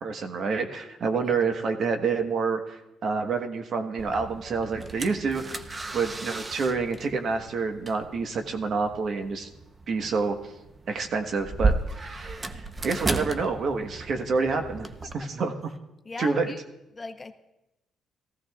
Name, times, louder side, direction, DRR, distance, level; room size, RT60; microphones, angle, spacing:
voice 1, 0.0-5.6 5.9-9.5 9.9-10.4 10.9-14.9 15.1-15.7 16.2-16.5, right 4 dB, 60° right, 6 dB, 1.2 m, -28 dB
sound 1, 4.0-15.1, right 3 dB, 30° right, 0.7 m, -34 dB
voice 2, 16.0-16.6 16.9-17.3, left 3 dB, 30° left, 7 dB, 0.8 m, -38 dB
18.0 x 15.0 x 2.4 m, 0.95 s
supercardioid pair, 70°, 0 cm